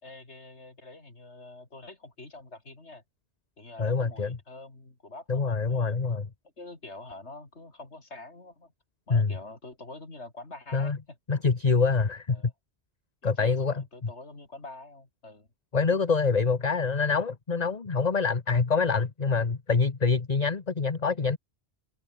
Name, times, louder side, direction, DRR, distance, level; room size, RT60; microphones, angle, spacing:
voice 1, 0.0-3.0 3.6-6.0 6.6-8.7 9.1-11.2 12.3-12.5 13.2-15.5, left 2 dB, 85° left, 4.4 m, -46 dB
voice 2, 3.8-4.4 5.3-6.3 9.1-9.3 10.7-11.0 11.3-12.4 13.2-14.1 15.7-21.4, left 4 dB, 40° left, 1.4 m, -25 dB
omnidirectional pair, 1.1 m